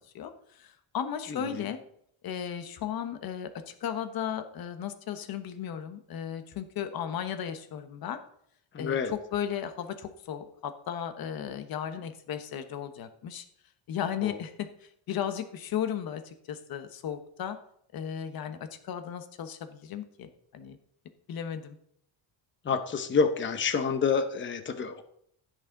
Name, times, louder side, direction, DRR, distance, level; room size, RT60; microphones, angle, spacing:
voice 1, 0.0-1.8 2.2-8.2 8.8-13.4 13.9-17.6 17.9-20.8 21.3-21.8, left 9 dB, 50° left, 9 dB, 1.2 m, -35 dB
voice 2, 1.3-1.6 8.7-9.1 14.2-14.4 22.6-25.0, left 5 dB, 25° left, 8 dB, 0.9 m, -28 dB
15.5 x 6.4 x 3.9 m, 0.69 s
cardioid pair, 155°, 47 cm